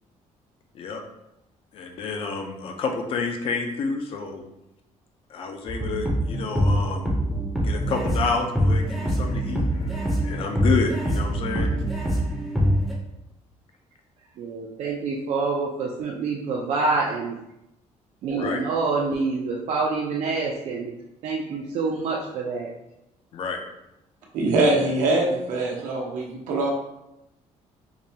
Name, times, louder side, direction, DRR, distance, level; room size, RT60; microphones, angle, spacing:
voice 1, 1.7-4.4 5.3-7.2 7.6-11.7 18.3-18.6 23.3-23.6, left 4 dB, 45° left, 4 dB, 0.5 m, -29 dB
sound 1, 5.7-12.9, equal, ahead, 0.6 m, -24 dB
voice 2, 14.4-17.3 18.2-20.9 21.2-22.7, right 4 dB, 60° right, -3 dB, 0.5 m, -26 dB
voice 3, 24.3-26.7, right 2 dB, 85° right, -2 dB, 0.9 m, -23 dB
4.8 x 2.2 x 2.7 m, 0.88 s
cardioid pair, 160°, 13 cm